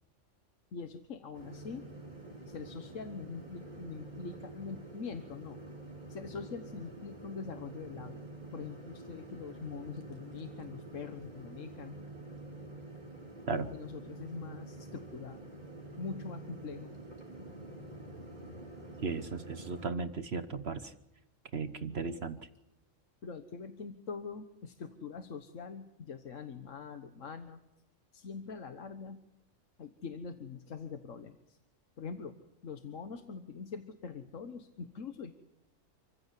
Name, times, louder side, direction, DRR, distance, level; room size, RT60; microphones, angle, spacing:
voice 1, 0.7-1.8 2.5-5.6 6.1-8.2 8.5-11.9 13.5-15.4 16.0-16.9 23.2-27.6 28.1-29.2 29.8-31.6 32.0-32.4 32.6-35.3, left 5 dB, 80° left, 8 dB, 1.6 m, -43 dB
sound 1, 1.3-19.9, right 2 dB, 35° right, 4.6 m, -47 dB
voice 2, 19.0-20.9 21.5-22.4, right 4 dB, 55° right, 11 dB, 1.3 m, -36 dB
28.5 x 15.5 x 8.3 m, 0.91 s
omnidirectional pair, 1.3 m